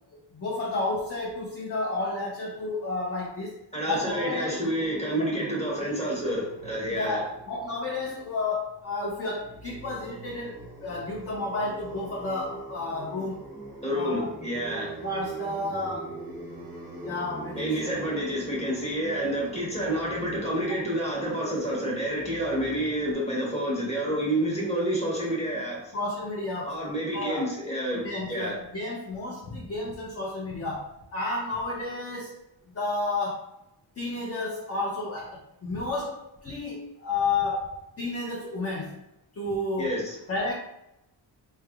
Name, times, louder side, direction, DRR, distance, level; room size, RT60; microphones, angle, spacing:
voice 1, 0.3-3.6 3.9-4.6 5.2-5.3 7.0-13.5 13.9-14.3 15.0-16.2 17.0-17.9 25.9-26.8 27.1-27.5 28.0-32.3 32.7-33.5 34.0-39.0 39.3-40.0 40.3-40.5, left 2 dB, 35° left, -3 dB, 0.5 m, -31 dB
voice 2, 3.7-7.2 13.8-15.0 17.5-25.9 26.6-28.5 39.8-40.2, right 1 dB, 15° left, -5 dB, 1.1 m, -29 dB
sound 1, 4.0-9.1 9.3-23.1, right 2 dB, 10° right, 1.1 m, -42 dB
4.3 x 3.2 x 2.3 m, 0.88 s
wide cardioid pair, 180°, 45 cm